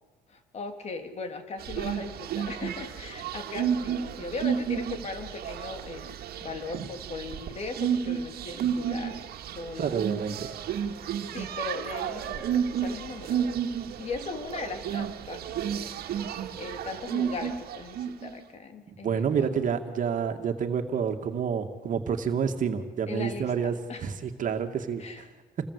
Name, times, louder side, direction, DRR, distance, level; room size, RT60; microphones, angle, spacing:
voice 1, 0.3-6.1 6.4-9.2 9.5-10.2 11.3-13.6 13.9-15.5 16.1-19.6 23.1-24.1 25.0-25.3, left 3 dB, 40° left, 6 dB, 3.4 m, -38 dB
sound 1, 1.6-18.3, right 8 dB, 65° right, 2.2 m, -32 dB
voice 2, 9.8-10.5 18.9-25.3, right 7 dB, 50° right, 5 dB, 2.4 m, -29 dB
28.5 x 20.0 x 8.5 m, 1.2 s
cardioid pair, 110°, 17 cm